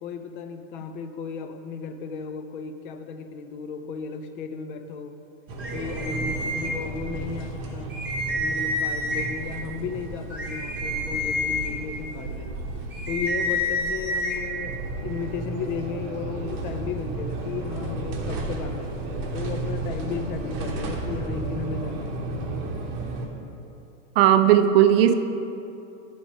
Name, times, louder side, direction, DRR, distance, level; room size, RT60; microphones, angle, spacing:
voice 1, 0.0-5.2 5.7-7.9 8.3-12.7 13.1-19.0 19.3-22.2, left 5 dB, 40° left, 8 dB, 0.5 m, -35 dB
sound 1, 5.5-23.3, right 2 dB, 30° right, 0.9 m, -33 dB
sound 2, 5.6-7.2 7.6-7.7 7.9-9.4 10.0-14.4, left 1 dB, 5° right, 0.8 m, -29 dB
voice 2, 24.2-25.1, right 11 dB, 50° right, 10 dB, 0.5 m, -16 dB
9.6 x 4.0 x 6.1 m, 2.8 s
supercardioid pair, 165°, 40 cm